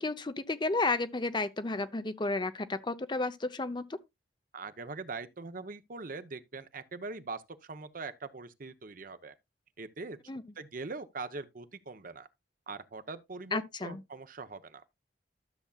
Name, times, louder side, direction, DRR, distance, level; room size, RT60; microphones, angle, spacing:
voice 1, 0.0-4.0 10.3-10.4 13.5-14.0, left 3 dB, 25° left, 0.7 m, -32 dB
voice 2, 4.5-9.3 9.8-10.2 10.6-12.3 12.7-14.8, right 3 dB, 50° right, 0.8 m, -42 dB
13.0 x 7.0 x 2.3 m
head